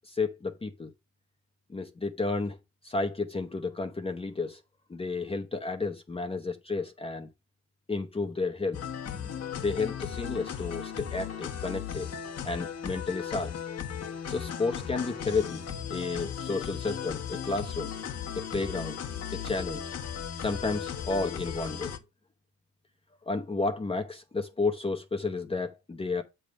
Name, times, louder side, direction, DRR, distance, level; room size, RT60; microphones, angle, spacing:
voice 1, 0.1-0.9 1.7-2.6 2.8-4.6 4.9-7.3 7.9-8.8 9.1-9.3 9.6-12.1 12.4-13.5 14.3-15.6 15.9-17.9 18.4-19.0 19.3-19.9 20.4-21.9 23.3-26.2, left 3 dB, 20° left, 0.8 m, -32 dB
sound 1, 8.7-22.0, left 8 dB, 55° left, 1.2 m, -36 dB
7.3 x 3.5 x 5.2 m
cardioid pair, 90°, 30 cm